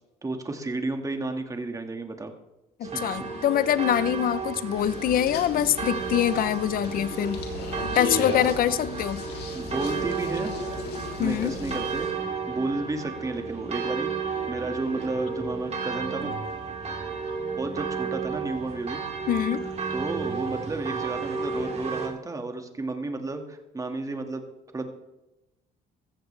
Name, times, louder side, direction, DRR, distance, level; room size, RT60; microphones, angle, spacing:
voice 1, 0.2-2.3 2.8-3.3 9.5-10.5 11.2-12.1 12.5-16.3 17.5-19.0 19.9-24.5 24.7-24.9, right 2 dB, 20° right, 5 dB, 1.9 m, -32 dB
voice 2, 2.8-7.4 7.9-9.2 11.2-11.5 19.3-19.6, left 10 dB, 60° left, 16 dB, 0.7 m, -24 dB
sound 1, 2.8-22.1, right 5 dB, 40° right, 2.8 m, -33 dB
sound 2, 4.7-12.1, left 5 dB, 75° left, 2.8 m, -36 dB
15.5 x 14.5 x 3.4 m, 0.98 s
cardioid pair, 110°, 17 cm